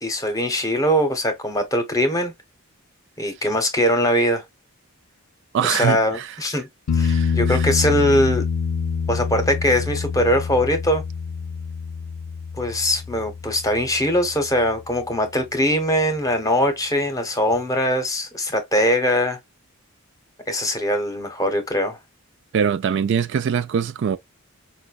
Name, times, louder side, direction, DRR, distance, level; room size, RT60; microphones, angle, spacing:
voice 1, 0.0-2.3 3.2-4.4 5.6-6.7 6.9-8.5 9.1-11.0 12.6-19.4 20.5-22.0, equal, 15° left, 0.8 m, -21 dB
voice 2, 5.5-6.3 7.0-7.7 22.5-24.2, right 7 dB, 55° right, 0.3 m, -23 dB
sound 1, 6.9-14.5 17.5-17.6, left 6 dB, 85° left, 0.5 m, -26 dB
5.0 x 2.2 x 2.3 m
head